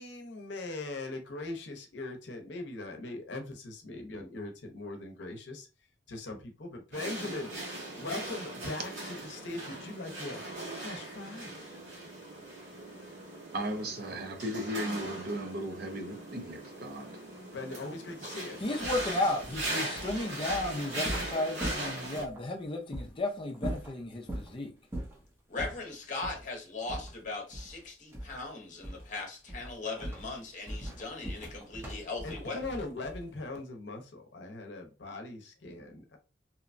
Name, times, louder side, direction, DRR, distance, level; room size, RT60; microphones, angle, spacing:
voice 1, 0.0-5.7 6.1-7.5 8.0-10.4 10.7-11.6 17.5-18.6 32.2-36.2, left 2 dB, 70° left, 0.7 m, -40 dB
sound 1, 6.9-22.2, right 1 dB, 85° right, 1.3 m, -39 dB
voice 2, 13.5-17.1, equal, 60° right, 0.6 m, -36 dB
voice 3, 18.6-24.7, left 2 dB, 30° left, 0.5 m, -33 dB
sound 2, 18.8-22.4 22.9-23.1 23.5-24.5 24.9-25.2 25.6-25.8 26.2-26.4 26.9-27.8 28.1-28.5 28.8-29.1 29.5-33.4, right 1 dB, 15° right, 0.7 m, -40 dB
voice 4, 25.5-32.6, left 3 dB, 45° left, 0.9 m, -39 dB
2.8 x 2.2 x 2.5 m
head